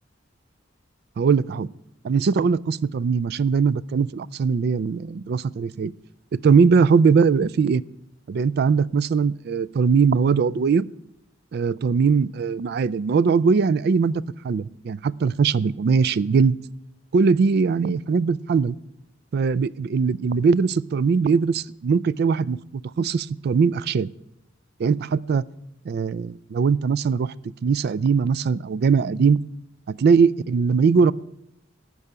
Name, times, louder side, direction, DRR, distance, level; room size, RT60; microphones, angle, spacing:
voice 1, 1.2-1.7 2.0-5.9 6.4-7.8 8.3-10.9 11.5-16.6 17.1-18.8 19.3-24.1 24.8-25.4 25.9-27.3 27.6-29.4 29.9-31.1, right 5 dB, 55° right, 20 dB, 0.3 m, -20 dB
12.0 x 4.8 x 8.7 m, 0.83 s
head